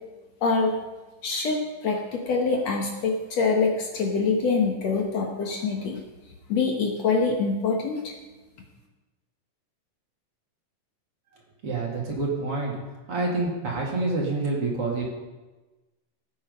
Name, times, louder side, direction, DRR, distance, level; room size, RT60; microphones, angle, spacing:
voice 1, 0.4-0.7 1.2-6.0 6.5-8.1, left 4 dB, 60° left, 1 dB, 2.3 m, -25 dB
voice 2, 11.6-12.8 13.1-15.1, right 3 dB, 45° right, -2 dB, 3.1 m, -27 dB
17.5 x 8.9 x 5.3 m, 1.2 s
omnidirectional pair, 3.8 m